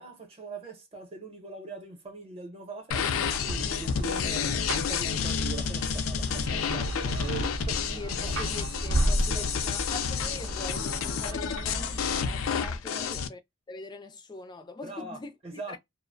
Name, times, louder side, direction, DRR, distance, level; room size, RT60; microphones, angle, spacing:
voice 1, 0.0-8.4 9.3-9.5 12.8-13.1 14.8-15.8, right 3 dB, 30° right, 0.7 m, -42 dB
sound 1, 2.9-13.3, left 6 dB, 90° left, 0.4 m, -30 dB
sound 2, 3.2-12.2, equal, 75° right, 0.6 m, -33 dB
voice 2, 7.9-13.4 13.7-15.3 15.7-15.8, left 3 dB, 20° left, 0.3 m, -42 dB
2.4 x 2.0 x 2.5 m
head